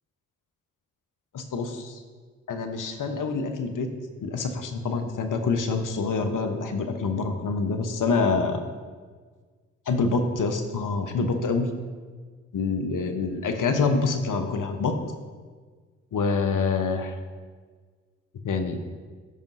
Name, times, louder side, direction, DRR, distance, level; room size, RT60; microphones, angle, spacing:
voice 1, 1.3-2.0 2.5-3.9 4.2-8.6 9.9-11.7 12.5-15.0 16.1-17.1 18.4-18.8, left 4 dB, 55° left, 6 dB, 1.1 m, -26 dB
14.0 x 5.3 x 2.7 m, 1.5 s
hypercardioid pair, 40°, 37 cm